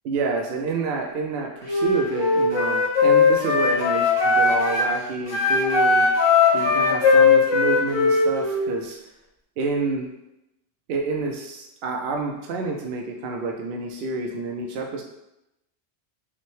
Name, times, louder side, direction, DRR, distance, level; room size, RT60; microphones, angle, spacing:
voice 1, 0.0-6.1 6.5-9.0 9.6-10.1 10.9-15.0, right 3 dB, 65° right, 1 dB, 0.7 m, -28 dB
Wind instrument woodwind instrument, 1.6-4.9 5.3-8.7, left 4 dB, 30° left, 0.6 m, -19 dB
5.8 x 2.1 x 3.1 m, 0.88 s
omnidirectional pair, 1.2 m